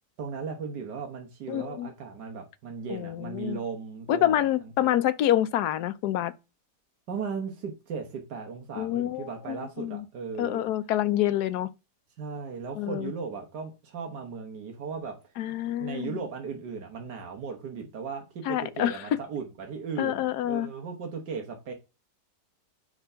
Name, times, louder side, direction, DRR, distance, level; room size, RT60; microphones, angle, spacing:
voice 1, 0.2-4.9 7.1-10.6 12.2-15.3 15.8-21.7, right 5 dB, 80° right, 1.8 m, -37 dB
voice 2, 1.5-1.9 2.9-3.6 4.1-6.3 8.8-10.0 10.4-11.7 12.8-13.1 15.4-16.2 18.5-19.0 20.0-20.7, left 12 dB, 75° left, 1.2 m, -27 dB
5.9 x 3.6 x 5.6 m
omnidirectional pair, 1.8 m